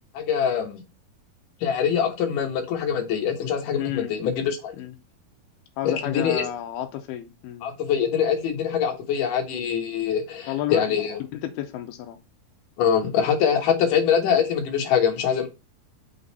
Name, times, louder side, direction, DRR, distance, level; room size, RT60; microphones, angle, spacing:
voice 1, 0.1-0.8 1.6-4.7 5.9-6.5 7.6-11.2 12.8-15.5, left 7 dB, 65° left, 2.6 m, -24 dB
voice 2, 3.8-4.2 4.8-5.0 5.8-7.7 10.5-10.9 11.3-12.2, left 11 dB, 85° left, 2.6 m, -31 dB
6.0 x 4.0 x 4.0 m
omnidirectional pair, 4.5 m